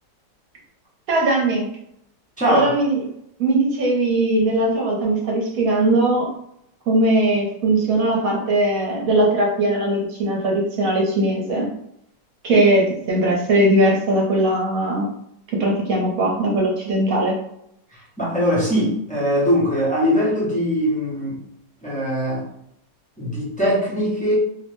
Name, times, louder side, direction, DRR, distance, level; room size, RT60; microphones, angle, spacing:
voice 1, 1.1-1.7 2.5-3.0 3.4-6.3 6.9-11.7 12.4-15.0 15.6-17.4, right 1 dB, 60° right, -2 dB, 1.0 m, -19 dB
voice 2, 2.4-2.7 17.9-21.4 21.8-22.5 23.2-24.3, equal, 10° left, -8 dB, 0.4 m, -21 dB
3.0 x 2.1 x 3.1 m, 0.75 s
omnidirectional pair, 1.9 m